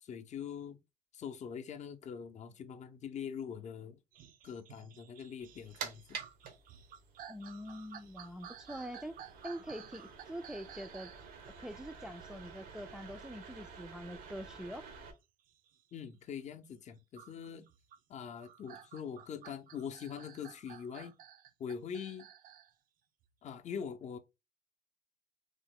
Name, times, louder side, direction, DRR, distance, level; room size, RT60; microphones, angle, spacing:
voice 1, 0.0-0.8 1.1-4.0 4.4-6.2 15.9-17.7 18.1-21.1 21.6-22.3 23.4-24.2, left 7 dB, 50° left, 0.5 m, -43 dB
sound 1, 4.1-16.5 17.1-22.7 23.2-23.3, right 9 dB, 70° right, 0.5 m, -54 dB
sound 2, 5.4-15.1, right 6 dB, 90° right, 0.8 m, -50 dB
voice 2, 7.3-9.2 9.4-11.1 11.6-14.8, equal, 5° right, 0.3 m, -44 dB
3.2 x 2.0 x 3.5 m
cardioid pair, 95°, 15 cm